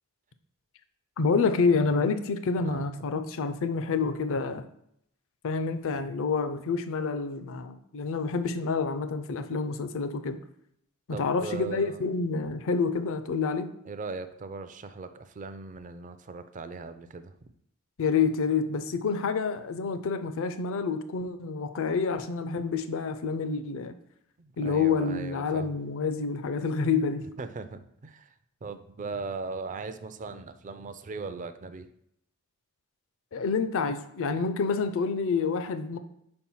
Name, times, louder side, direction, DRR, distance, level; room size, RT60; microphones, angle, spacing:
voice 1, 1.2-4.7 5.4-10.4 11.1-13.7 18.0-23.9 24.6-27.2 33.3-36.0, left 4 dB, 65° left, 11 dB, 0.5 m, -28 dB
voice 2, 11.1-12.0 13.9-17.3 24.4-25.7 27.4-28.3 28.6-31.9, right 4 dB, 35° right, 10 dB, 0.4 m, -39 dB
4.8 x 4.4 x 5.5 m, 0.75 s
head